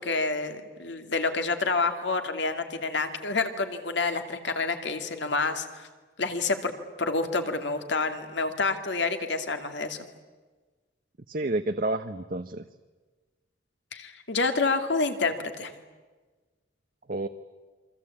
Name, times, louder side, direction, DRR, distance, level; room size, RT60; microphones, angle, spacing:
voice 1, 0.0-5.9 6.2-6.7 7.0-10.0 13.9-15.7, left 3 dB, 70° left, 7 dB, 2.5 m, -28 dB
voice 2, 11.3-12.6 17.1-17.3, right 2 dB, 45° right, 8 dB, 0.8 m, -29 dB
28.5 x 24.5 x 8.6 m, 1.3 s
head